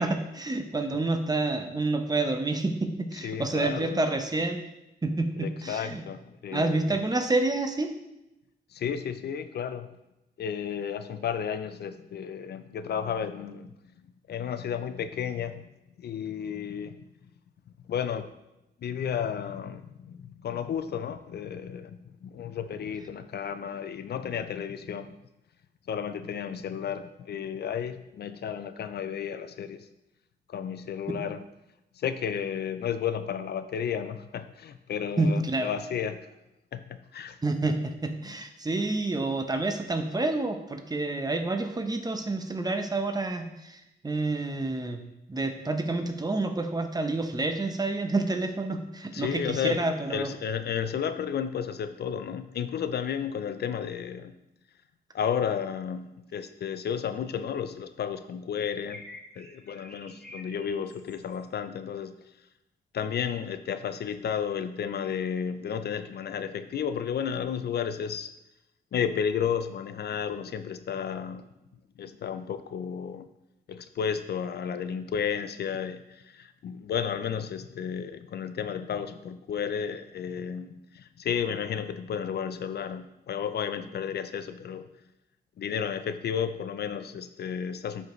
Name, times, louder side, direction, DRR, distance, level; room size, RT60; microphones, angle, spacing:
voice 1, 0.0-4.6 5.0-6.0 6.5-7.9 35.2-35.7 37.4-45.0 45.3-50.3, right 2 dB, 20° right, 6 dB, 0.8 m, -28 dB
voice 2, 3.1-4.0 5.4-7.0 8.7-9.9 10.4-13.7 14.3-15.7 16.0-17.1 17.9-18.3 18.8-25.1 25.9-29.9 30.5-31.4 32.0-36.3 36.7-37.4 49.1-49.8 50.1-54.3 55.1-59.0 59.4-62.1 62.9-68.3 68.9-71.5 72.0-73.3 73.7-84.9 85.6-88.1, left 8 dB, 65° left, 11 dB, 0.5 m, -32 dB
sound 1, 58.9-61.4, left 1 dB, 5° left, 1.9 m, -48 dB
9.6 x 5.3 x 3.1 m, 0.91 s
cardioid pair, 85°, 18 cm